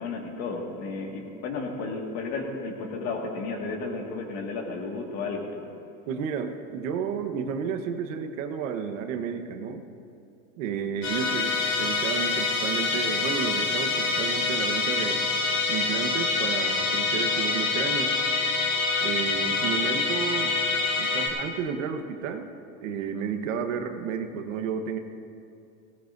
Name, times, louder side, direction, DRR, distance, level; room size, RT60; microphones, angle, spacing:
voice 1, 0.0-5.5, left 3 dB, 40° left, 1 dB, 1.8 m, -33 dB
voice 2, 6.1-9.9 10.6-15.2 15.7-18.1 19.0-20.6 21.0-22.5 22.8-25.0, right 7 dB, 70° right, 6 dB, 1.2 m, -32 dB
Musical instrument, 11.0-21.3, left 4 dB, 65° left, 3.3 m, -26 dB
18.5 x 18.0 x 2.6 m, 2.5 s
supercardioid pair, 170°, 40 cm